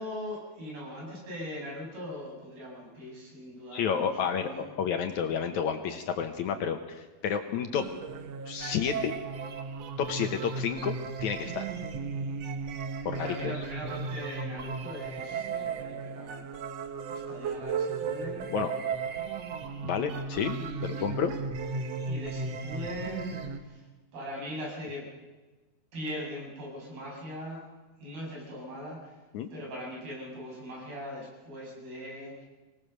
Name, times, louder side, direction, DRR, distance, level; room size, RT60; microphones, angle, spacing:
voice 1, 0.0-4.7 13.1-16.5 17.1-18.5 20.5-21.1 22.0-23.9 24.1-25.1 25.9-27.6 28.0-29.2 29.5-32.5, equal, 80° right, -2 dB, 8.2 m, -40 dB
voice 2, 3.7-7.9 8.5-9.1 10.0-11.7 13.1-13.5 18.5-18.7 19.8-20.6 20.8-21.3 29.3-29.5, left 7 dB, 70° left, 7 dB, 2.0 m, -30 dB
sound 1, 7.7-23.6, right 5 dB, 60° right, 1.8 m, -35 dB
24.5 x 19.0 x 6.6 m, 1.2 s
omnidirectional pair, 4.2 m